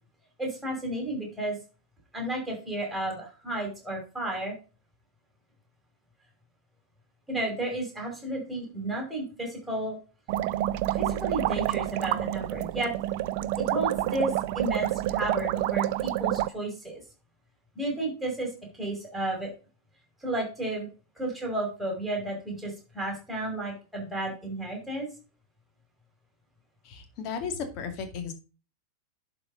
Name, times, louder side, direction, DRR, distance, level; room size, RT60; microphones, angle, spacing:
voice 1, 0.4-1.6 2.1-4.5 7.3-10.0 10.9-12.9 13.6-17.0 17.7-18.5 18.8-19.5 20.2-20.9 21.2-25.1, right 1 dB, ahead, 0 dB, 5.5 m, -32 dB
sound 1, 10.3-16.5, right 14 dB, 45° right, 0.5 m, -28 dB
voice 2, 26.8-28.3, left 6 dB, 40° left, 6 dB, 2.2 m, -35 dB
11.5 x 5.0 x 3.9 m, 0.34 s
figure-of-eight pair, 90°, 0 cm